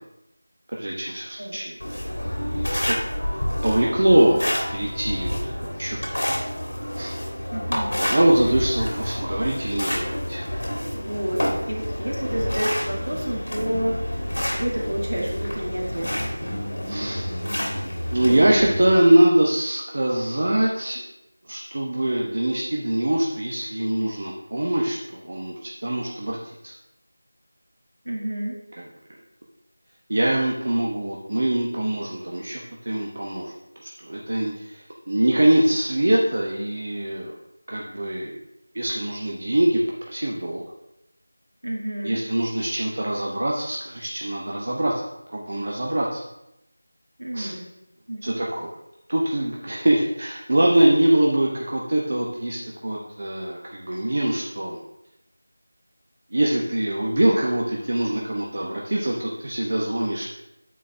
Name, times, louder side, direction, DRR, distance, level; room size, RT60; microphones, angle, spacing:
voice 1, 0.7-1.8 2.3-3.0 3.6-6.2 6.9-7.2 8.0-10.4 16.9-17.4 18.1-21.0 21.4-26.7 30.1-37.4 37.7-38.4 38.7-39.8 40.1-40.6 42.0-45.0 45.3-46.2 47.3-47.5 48.2-48.7 49.1-54.8 56.3-60.2, right 1 dB, 50° right, -2 dB, 0.9 m, -23 dB
sound 1, 1.8-19.0, equal, 80° left, 1.9 m, -28 dB
voice 2, 7.5-8.0 11.0-16.2 28.0-28.6 41.6-42.2 47.2-47.6 48.1-48.4, right 1 dB, 80° right, -1 dB, 2.1 m, -29 dB
8.7 x 4.2 x 3.4 m, 0.86 s
figure-of-eight pair, 170°, 0 cm